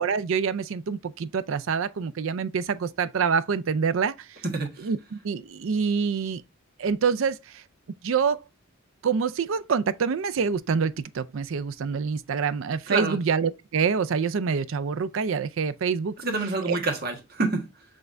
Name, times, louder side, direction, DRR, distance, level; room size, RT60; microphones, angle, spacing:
voice 1, 0.0-4.3 4.8-6.4 6.8-7.6 8.0-8.4 9.0-16.1 16.7-16.8, right 6 dB, 65° right, 0.4 m, -26 dB
voice 2, 4.4-4.9 12.9-13.2 16.2-17.8, right 3 dB, 45° right, 1.4 m, -28 dB
6.2 x 3.4 x 2.5 m
head